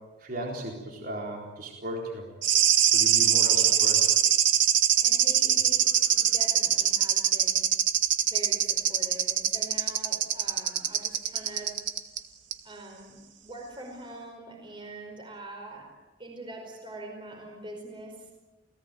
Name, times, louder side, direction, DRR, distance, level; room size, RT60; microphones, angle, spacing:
voice 1, 0.2-2.2 2.9-4.0, right 1 dB, 45° right, 0 dB, 4.0 m, -36 dB
sound 1, 2.4-12.2 12.5-12.6, right 10 dB, 70° right, 2.0 m, -23 dB
voice 2, 3.4-3.9 5.0-7.6 8.2-11.8 12.6-15.9 16.2-18.3, right 1 dB, 25° right, 2 dB, 5.0 m, -43 dB
29.5 x 18.5 x 9.1 m, 1.2 s
head